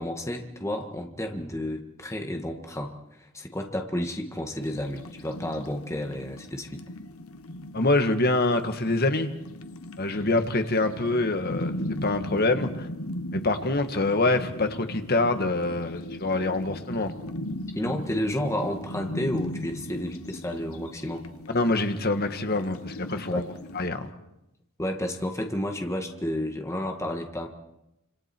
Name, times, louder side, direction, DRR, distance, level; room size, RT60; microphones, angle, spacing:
voice 1, 0.0-6.8 17.8-21.2 23.3-23.4 24.8-27.5, left 1 dB, 15° left, 3 dB, 1.8 m, -31 dB
sound 1, 4.6-23.9, left 1 dB, 90° left, 1.3 m, -38 dB
voice 2, 7.7-9.3 10.0-12.9 13.3-17.1 21.5-23.4 23.7-24.1, left 2 dB, 45° left, 7 dB, 1.7 m, -25 dB
27.5 x 26.5 x 4.5 m, 0.87 s
head